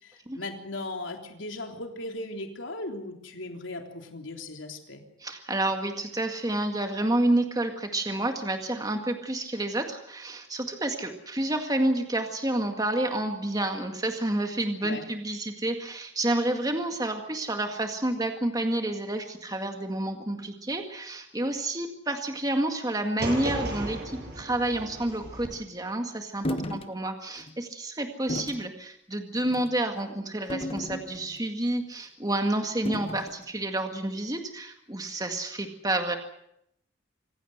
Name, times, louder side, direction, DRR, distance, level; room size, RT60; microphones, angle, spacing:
voice 1, 0.0-5.0 14.8-15.0 26.4-26.8, left 2 dB, 85° left, 4 dB, 3.5 m, -37 dB
voice 2, 5.2-36.2, right 1 dB, 20° right, 5 dB, 2.0 m, -29 dB
sound 1, 23.2-25.5, right 1 dB, 55° right, 7.7 m, -35 dB
sound 2, 26.4-26.9 27.4-27.5 28.3-28.7 29.4-29.7 30.5-31.4 32.9-33.4, left 1 dB, 30° left, 1.1 m, -34 dB
26.0 x 16.0 x 8.1 m, 0.75 s
head